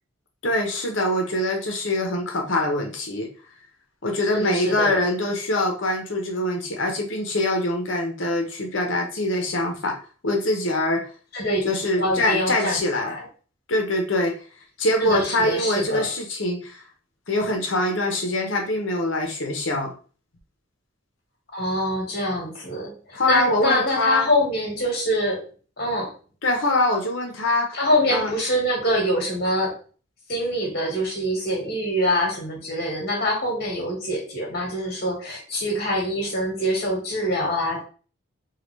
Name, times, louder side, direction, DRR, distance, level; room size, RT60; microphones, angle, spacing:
voice 1, 0.4-3.3 4.0-11.1 11.6-13.2 13.7-14.3 14.8-16.8 17.3-19.9 23.1-24.3 26.4-27.8 28.1-28.3, left 1 dB, 70° left, 2 dB, 1.0 m, -24 dB
voice 2, 4.3-5.0 11.3-11.6 12.0-13.2 15.0-16.1 21.5-25.4 25.8-26.1 27.7-29.8 30.3-37.8, equal, 50° left, -1 dB, 1.6 m, -25 dB
3.8 x 2.5 x 3.2 m, 0.38 s
head